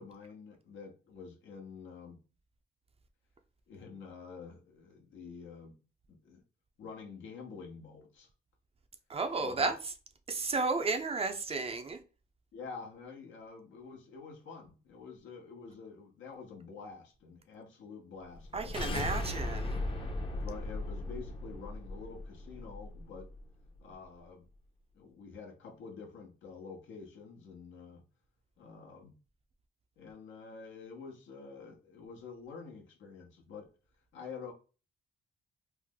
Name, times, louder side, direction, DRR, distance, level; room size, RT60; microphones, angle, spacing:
voice 1, 0.0-2.2 3.7-5.8 6.1-6.4 6.8-8.3 9.4-9.7 12.5-19.0 20.4-23.3 23.8-24.4 24.9-28.0 28.6-29.2 30.0-33.7 34.1-34.5, left 5 dB, 75° left, 1.0 m, -48 dB
voice 2, 9.1-9.8 10.3-12.0 18.5-19.8, right 3 dB, 30° right, 0.5 m, -33 dB
sound 1, 18.3-23.4, left 2 dB, 25° left, 0.7 m, -37 dB
3.2 x 2.0 x 3.5 m
cardioid pair, 90°, 20 cm